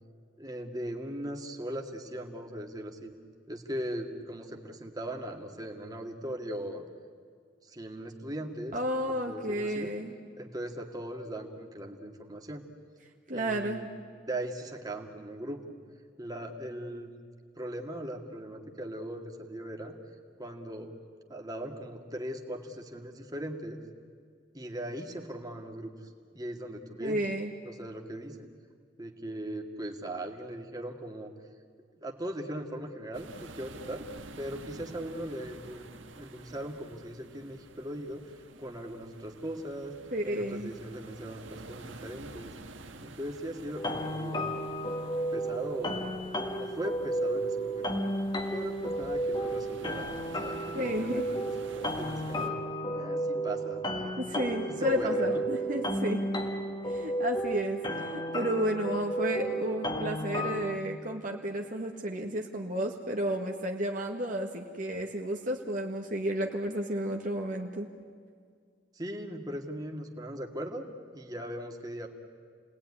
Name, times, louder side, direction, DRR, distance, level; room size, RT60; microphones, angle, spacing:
voice 1, 0.4-3.1 3.5-6.8 7.6-8.8 9.1-9.9 10.4-12.6 13.3-13.8 14.3-15.8 16.2-17.1 17.6-20.0 20.4-20.9 21.3-23.8 24.5-25.9 26.3-27.2 27.6-28.5 29.0-31.3 32.0-34.1 34.4-35.9 36.2-40.0 40.2-42.5 43.0-44.5 45.3-46.0 46.6-48.0 48.5-51.4 51.6-52.6 52.9-54.2 54.8-55.4 68.9-72.1, right 1 dB, 20° right, 2 dB, 2.2 m, -39 dB
voice 2, 8.7-10.1 13.3-13.8 27.0-27.5 40.1-40.7 50.7-51.3 54.2-56.2 56.9-67.9, equal, 45° right, 1 dB, 1.7 m, -32 dB
sound 1, 33.1-52.5, right 2 dB, 80° right, 1.7 m, -50 dB
sound 2, 43.7-60.8, right 1 dB, 25° left, 1.7 m, -33 dB
29.5 x 19.5 x 9.9 m, 2.1 s
head